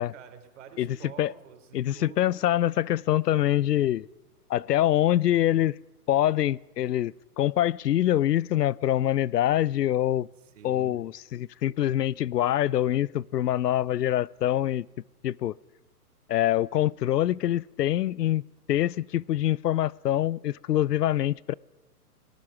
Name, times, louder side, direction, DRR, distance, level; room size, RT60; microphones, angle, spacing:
voice 1, 0.0-2.4 10.5-11.0, right 8 dB, 50° right, 3.7 m, -48 dB
voice 2, 0.8-1.3 1.7-4.1 4.5-5.8 6.1-10.3 10.6-14.9 15.2-15.5 16.3-18.4 18.7-21.5, left 12 dB, 85° left, 0.7 m, -25 dB
25.0 x 18.5 x 5.9 m
hypercardioid pair, 165°, 47 cm